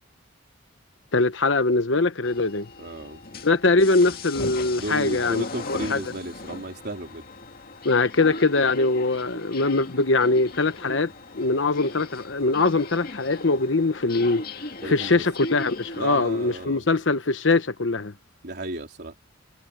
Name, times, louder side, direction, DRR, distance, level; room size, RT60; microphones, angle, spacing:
voice 1, 1.1-2.7 3.4-6.0 7.8-14.4 14.9-18.1, left 3 dB, 70° left, 1.1 m, -22 dB
sound 1, 2.2-16.7, left 2 dB, 50° left, 2.0 m, -38 dB
voice 2, 2.8-3.2 4.8-7.2 14.8-15.2 15.9-16.9 18.4-19.2, right 1 dB, 55° right, 3.8 m, -34 dB
head